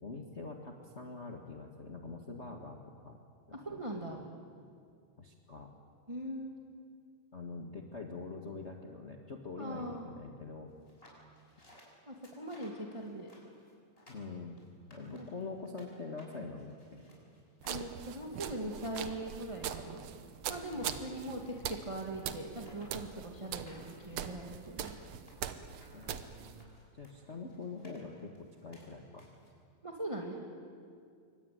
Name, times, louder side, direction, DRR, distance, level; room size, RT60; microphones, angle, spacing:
voice 1, 0.0-3.2 3.5-4.2 5.2-5.7 7.3-10.7 14.1-14.6 14.9-17.0 20.7-20.9 21.3-21.4 25.9-29.3, left 3 dB, 50° left, 2 dB, 0.8 m, -45 dB
voice 2, 3.5-4.2 6.1-6.5 9.6-10.1 12.0-13.3 15.2-15.3 17.6-20.0 20.5-25.0 29.8-30.5, right 1 dB, 10° right, 0 dB, 1.5 m, -41 dB
sound 1, 10.8-15.9 16.2-29.5, left 1 dB, 15° left, 6.3 m, -61 dB
sound 2, 17.6-26.6, right 9 dB, 70° right, 1.6 m, -42 dB
26.5 x 24.0 x 9.5 m, 2.3 s
omnidirectional pair, 4.1 m